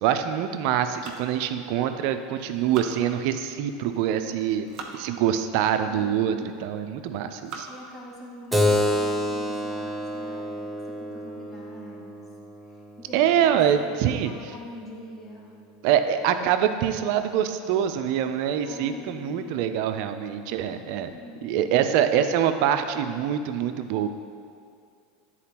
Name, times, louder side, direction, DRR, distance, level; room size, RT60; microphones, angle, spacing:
voice 1, 0.0-4.7 4.9-7.7 13.1-14.3 15.8-21.1 21.4-24.1, right 9 dB, 60° right, 9 dB, 0.4 m, -24 dB
sound 1, 0.9-2.1 2.5-3.6 4.3-5.0 5.7-5.8 6.5-6.8 7.3-7.9 8.4-8.5 8.9-9.0 9.4-9.7, right 5 dB, 45° right, 0.9 m, -42 dB
voice 2, 2.6-3.0 5.8-6.5 7.7-12.2 12.6-15.5 18.6-19.6 21.1-21.5, left 1 dB, 25° left, -4 dB, 1.5 m, -44 dB
Keyboard (musical), 8.5-13.6, left 1 dB, 5° right, 0.6 m, -28 dB
9.9 x 4.1 x 2.9 m, 2.3 s
hypercardioid pair, 105°, 0 cm